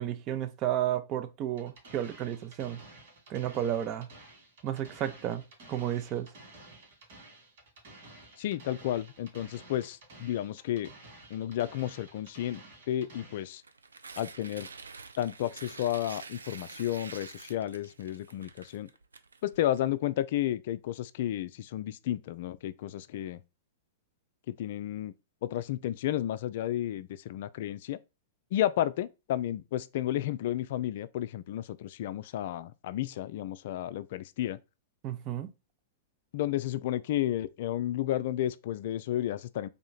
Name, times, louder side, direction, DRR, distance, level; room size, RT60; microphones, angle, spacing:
voice 1, 0.0-2.8 3.3-4.1 4.6-6.3 35.0-35.5, right 11 dB, 35° right, 0.6 m, -32 dB
sound 1, 1.6-13.6, right 2 dB, 60° right, 2.4 m, -52 dB
voice 2, 8.4-10.9 11.3-13.6 14.2-14.7 15.2-18.9 19.4-23.4 24.5-25.1 25.4-28.0 28.5-34.6 36.3-39.7, left 12 dB, 55° left, 0.3 m, -32 dB
Tearing, 13.6-19.8, right 4 dB, 80° right, 0.4 m, -47 dB
3.5 x 3.0 x 3.8 m
figure-of-eight pair, 105°, 0 cm